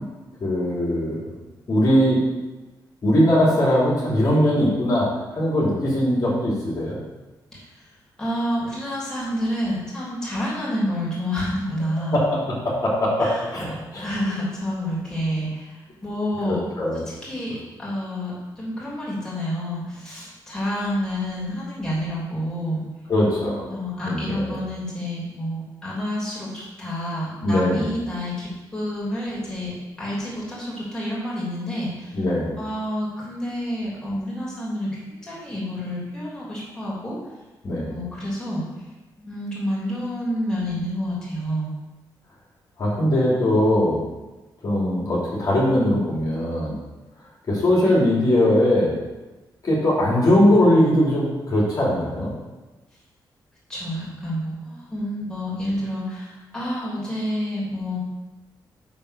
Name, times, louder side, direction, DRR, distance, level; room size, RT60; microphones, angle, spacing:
voice 1, 0.4-1.2 1.7-2.2 3.0-7.0 12.1-14.0 16.4-17.0 23.1-23.7 24.1-24.6 27.4-27.9 32.1-32.5 37.6-37.9 42.8-44.0 44.6-46.7 47.5-48.9 49.6-52.3, left 1 dB, 50° left, -5 dB, 3.1 m, -20 dB
voice 2, 7.5-7.8 8.2-12.2 13.2-13.5 14.0-16.6 17.1-22.8 23.7-29.7 30.0-32.2 32.6-37.1 37.9-38.7 39.2-41.7 53.7-58.0, equal, 10° left, -7 dB, 3.2 m, -29 dB
9.9 x 3.9 x 6.8 m, 1.1 s
wide cardioid pair, 140°, 8 cm